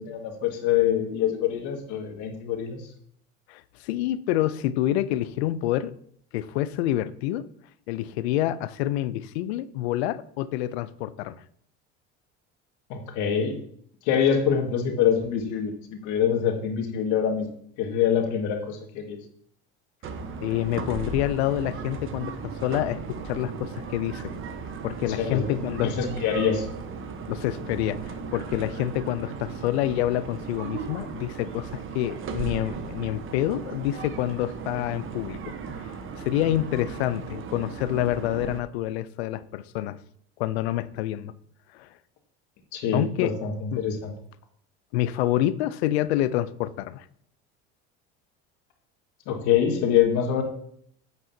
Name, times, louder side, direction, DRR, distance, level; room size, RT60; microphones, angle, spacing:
voice 1, 0.0-2.8 12.9-13.5 14.1-15.7 16.0-17.5 17.8-19.2 25.2-25.5 25.8-26.7 42.7-44.1 49.3-50.4, left 8 dB, 70° left, 1.9 m, -25 dB
voice 2, 3.5-5.9 6.3-7.5 7.9-11.4 20.4-24.3 24.8-25.9 27.3-35.6 36.2-40.0 40.4-41.3 41.7-41.9 42.9-43.3 43.7-43.8 44.9-47.1, left 13 dB, 85° left, 0.6 m, -27 dB
sound 1, 20.0-38.6, right 5 dB, 40° right, 1.1 m, -36 dB
9.2 x 8.0 x 2.8 m
supercardioid pair, 85°, 31 cm